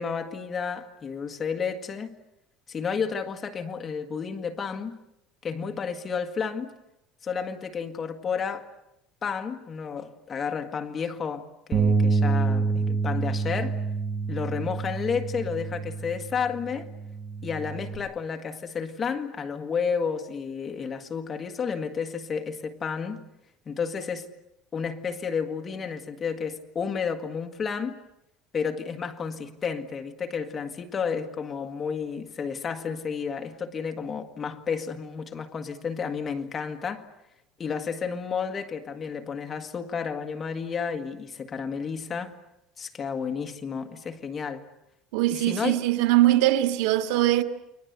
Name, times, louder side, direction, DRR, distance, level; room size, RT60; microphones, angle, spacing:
voice 1, 0.0-2.2 2.7-5.0 5.4-6.7 7.2-8.7 9.2-13.8 14.3-16.9 17.4-23.2 23.6-24.3 24.7-28.0 28.5-37.1 37.6-42.3 42.8-44.6 45.3-45.8, left 6 dB, 20° left, 1.6 m, -31 dB
Bass guitar, 11.7-18.0, right 4 dB, 30° right, 5.1 m, -27 dB
voice 2, 45.1-47.4, right 15 dB, 90° right, 1.8 m, -21 dB
30.0 x 22.5 x 8.1 m
cardioid pair, 170°, 0 cm